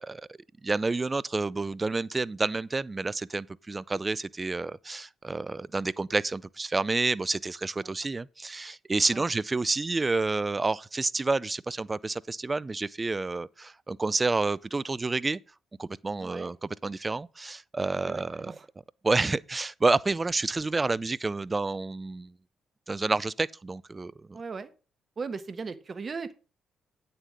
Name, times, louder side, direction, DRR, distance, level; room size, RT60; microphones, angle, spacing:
voice 1, 0.0-15.4 15.8-18.5 19.0-22.3 22.9-24.4, right 3 dB, 30° right, 0.5 m, -29 dB
voice 2, 16.2-16.5 17.9-18.7 24.3-24.7 25.2-26.3, right 4 dB, 45° right, 1.2 m, -38 dB
9.1 x 6.9 x 5.1 m
hypercardioid pair, 45°, 0 cm